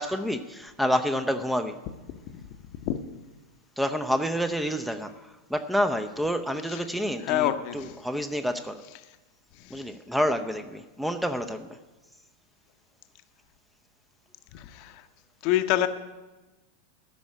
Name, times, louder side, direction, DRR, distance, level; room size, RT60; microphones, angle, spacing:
voice 1, 0.0-1.8 3.8-5.1 5.5-7.5 7.7-8.8 9.7-11.8, equal, ahead, 9 dB, 0.6 m, -28 dB
voice 2, 7.2-8.0 9.0-9.1 9.5-9.9 14.5-15.1 15.4-15.9, left 13 dB, 45° left, 9 dB, 0.8 m, -28 dB
13.0 x 6.2 x 9.4 m, 1.1 s
figure-of-eight pair, 90°, 0 cm